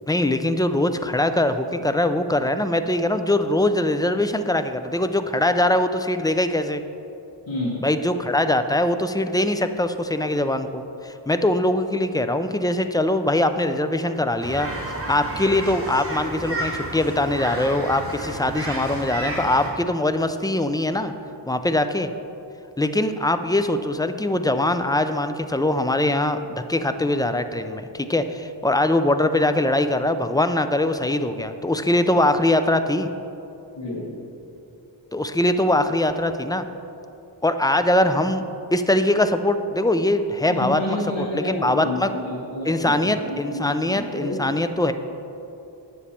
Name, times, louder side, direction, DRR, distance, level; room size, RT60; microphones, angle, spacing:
voice 1, 0.1-6.8 7.8-21.1 21.5-22.1 22.8-33.1 35.1-36.6 37.4-38.4 38.7-42.1 42.7-44.9, left 1 dB, 10° left, 9 dB, 0.3 m, -22 dB
voice 2, 7.5-7.8 33.7-34.1 40.5-44.4, left 2 dB, 85° left, -7 dB, 1.6 m, -29 dB
sound 1, 14.4-19.7, right 1 dB, 30° right, 1.7 m, -31 dB
9.4 x 7.2 x 4.3 m, 2.8 s
wide cardioid pair, 65°, 46 cm